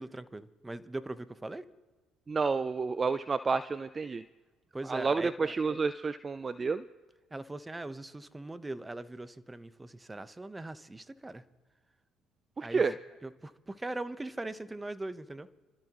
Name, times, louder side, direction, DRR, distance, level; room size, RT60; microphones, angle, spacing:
voice 1, 0.0-1.6 4.7-5.3 7.3-11.4 12.6-12.8 13.2-15.5, right 2 dB, 15° right, 12 dB, 1.0 m, -40 dB
voice 2, 2.3-4.2 4.9-6.8 12.6-12.9, right 4 dB, 35° right, 14 dB, 0.5 m, -30 dB
28.5 x 13.0 x 3.1 m, 1.3 s
hypercardioid pair, 60°, 0 cm